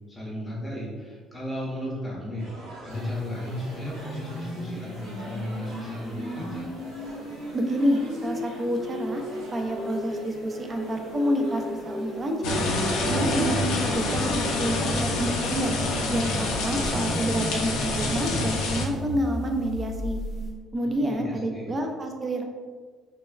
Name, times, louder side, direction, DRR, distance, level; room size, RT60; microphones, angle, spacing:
voice 1, 0.0-2.5 2.8-6.7 20.8-21.7, left 1 dB, 15° left, -5 dB, 0.6 m, -35 dB
sound 1, 2.4-13.2, right 1 dB, 85° right, 0.8 m, -44 dB
sound 2, 2.9-20.5, equal, 45° left, 0.7 m, -36 dB
voice 2, 7.5-9.2 9.5-12.7 13.1-15.8 16.1-20.2 20.7-22.4, equal, 25° right, 3 dB, 0.3 m, -28 dB
sound 3, 12.4-18.9, left 2 dB, 85° left, 0.4 m, -27 dB
3.2 x 2.1 x 2.2 m, 1.6 s
cardioid pair, 135°, 0 cm